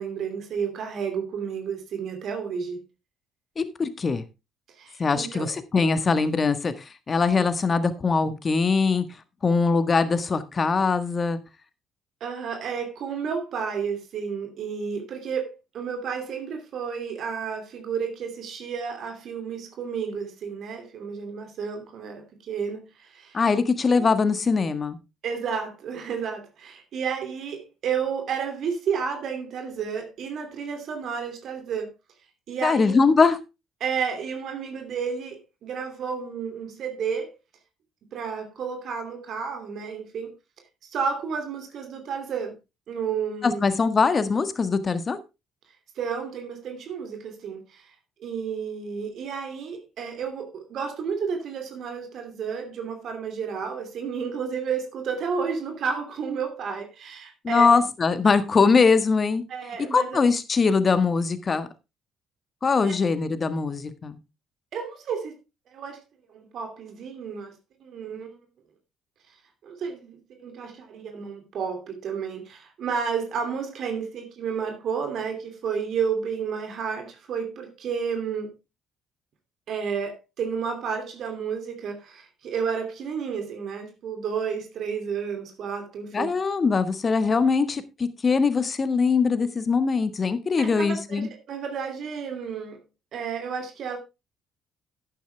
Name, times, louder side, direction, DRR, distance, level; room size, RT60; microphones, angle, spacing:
voice 1, 0.0-2.9 4.7-5.5 12.2-23.4 23.9-24.0 25.2-31.9 32.5-33.0 33.8-37.3 38.1-40.3 40.8-42.5 42.9-43.6 45.9-47.9 48.2-57.7 59.5-60.2 62.8-63.0 64.7-65.3 65.7-66.0 66.3-67.5 67.8-68.4 69.6-78.5 79.7-86.3 87.2-87.3 90.6-92.8 93.1-94.0, right 6 dB, 60° right, 2.8 m, -31 dB
voice 2, 3.6-4.2 5.0-6.7 7.1-9.0 9.4-11.4 23.3-25.0 32.6-33.4 43.4-45.2 57.4-59.4 59.9-61.7 62.6-64.2 86.1-91.3, left 4 dB, 40° left, 1.5 m, -22 dB
11.0 x 9.3 x 3.4 m
hypercardioid pair, 55°, 0 cm